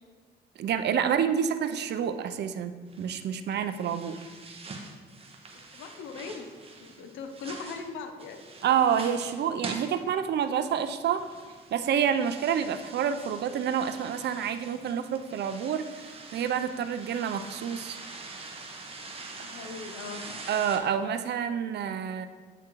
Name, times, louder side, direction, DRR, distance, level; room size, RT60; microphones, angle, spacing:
voice 1, 0.6-4.2 8.6-11.2 11.7-18.0 20.5-22.3, right 8 dB, 60° right, 10 dB, 0.4 m, -28 dB
sound 1, 2.9-20.8, right 3 dB, 30° right, 0.8 m, -45 dB
voice 2, 5.5-6.5 6.8-8.4 19.4-20.4, left 4 dB, 85° left, 6 dB, 0.7 m, -40 dB
8.9 x 3.6 x 2.9 m, 1.4 s
cardioid pair, 90°, 20 cm